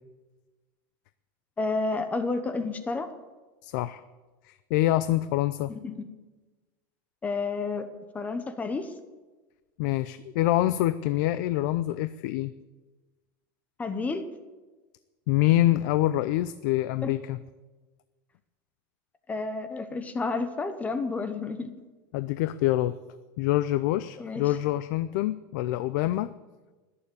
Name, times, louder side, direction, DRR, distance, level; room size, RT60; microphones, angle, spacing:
voice 1, 1.6-3.1 5.7-6.1 7.2-7.9 8.1-8.9 13.8-14.3 17.0-17.1 19.3-21.7 24.2-24.4, left 3 dB, 15° left, 10 dB, 0.9 m, -30 dB
voice 2, 3.6-4.0 4.5-5.7 9.8-12.5 15.3-17.4 22.1-22.9 23.4-26.3, left 15 dB, 60° left, 14 dB, 0.5 m, -26 dB
20.5 x 7.1 x 8.5 m, 1.2 s
supercardioid pair, 160°, 11 cm